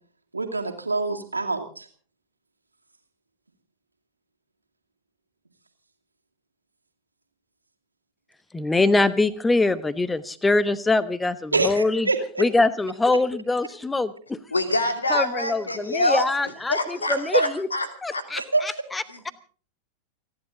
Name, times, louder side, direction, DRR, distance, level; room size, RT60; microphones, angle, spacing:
voice 1, 0.3-1.9 11.5-12.4 15.7-15.8 17.3-17.5 18.4-18.6, right 3 dB, 80° right, 3 dB, 2.5 m, -25 dB
voice 2, 8.5-12.1 12.4-14.4 15.1-17.7 18.0-19.3, left 2 dB, 10° left, 16 dB, 1.0 m, -23 dB
voice 3, 14.5-16.2 16.7-17.9 18.1-18.2 19.1-19.2, left 2 dB, 80° left, 8 dB, 2.7 m, -25 dB
30.0 x 11.0 x 3.9 m, 0.41 s
figure-of-eight pair, 90°, 0 cm